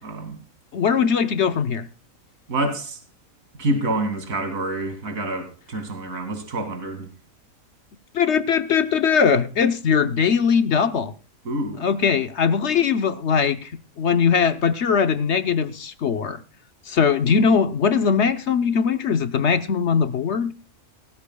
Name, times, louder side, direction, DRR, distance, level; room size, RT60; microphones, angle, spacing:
voice 1, 0.0-0.4 2.5-3.0 3.6-7.1 11.4-11.9, right 1 dB, 65° right, 2.8 m, -27 dB
voice 2, 0.7-1.9 8.1-11.1 11.7-13.7 14.0-16.4 16.9-20.5, left 6 dB, 55° left, 1.0 m, -20 dB
18.0 x 15.0 x 2.3 m
omnidirectional pair, 1.5 m